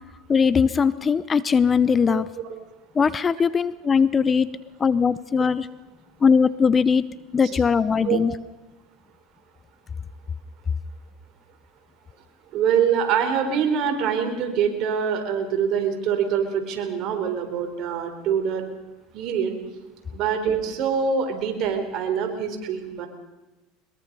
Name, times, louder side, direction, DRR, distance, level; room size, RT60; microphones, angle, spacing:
voice 1, 0.3-2.3 3.0-4.5 4.8-5.7 6.2-7.1 7.3-8.3, left 6 dB, 25° left, 17 dB, 0.7 m, -20 dB
voice 2, 2.1-2.6 8.0-8.2 12.5-18.6 19.1-19.5 20.1-23.1, right 7 dB, 55° right, 5 dB, 4.3 m, -24 dB
22.5 x 22.0 x 5.5 m, 1.1 s
supercardioid pair, 100°, 0 cm